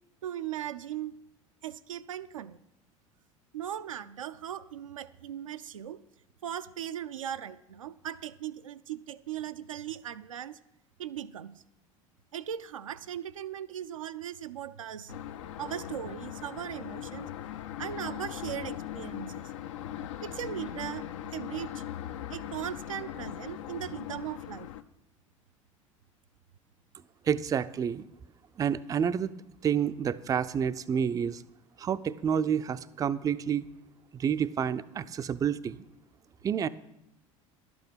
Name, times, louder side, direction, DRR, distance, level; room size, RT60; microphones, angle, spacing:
voice 1, 0.2-1.1 1.6-2.6 3.5-6.0 6.4-10.6 11.0-11.6 12.3-15.2 15.6-17.3 17.8-19.4 20.2-21.1 21.3-21.8 22.3-24.7, right 10 dB, 75° right, 10 dB, 0.5 m, -38 dB
sound 1, 15.1-24.8, left 11 dB, 65° left, 0.6 m, -40 dB
voice 2, 27.2-28.0 28.6-29.3 29.6-31.4 31.8-33.7 34.1-35.8 36.4-36.7, right 8 dB, 20° right, 13 dB, 0.4 m, -29 dB
11.5 x 8.6 x 5.6 m, 0.85 s
figure-of-eight pair, 75°, 17 cm